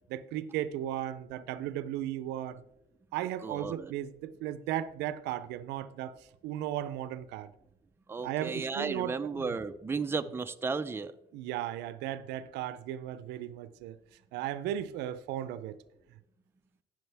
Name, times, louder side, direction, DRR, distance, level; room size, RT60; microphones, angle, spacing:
voice 1, 0.1-2.6 3.1-6.1 6.4-7.5 8.2-9.4 11.3-14.0 14.3-15.8, right 12 dB, 90° right, 0.5 m, -36 dB
voice 2, 3.4-3.9 8.1-11.1, right 4 dB, 15° right, 0.5 m, -34 dB
14.0 x 6.2 x 3.4 m
cardioid pair, 110°, 17 cm